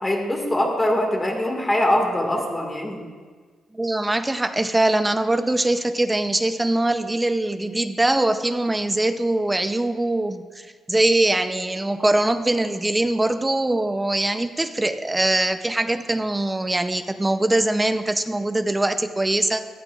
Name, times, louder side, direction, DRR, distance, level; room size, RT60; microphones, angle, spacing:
voice 1, 0.0-3.0, left 1 dB, 15° left, 1 dB, 1.8 m, -22 dB
voice 2, 3.7-19.7, right 2 dB, 10° right, 8 dB, 0.5 m, -22 dB
17.5 x 11.5 x 2.4 m, 1.5 s
cardioid pair, 150°, 0 cm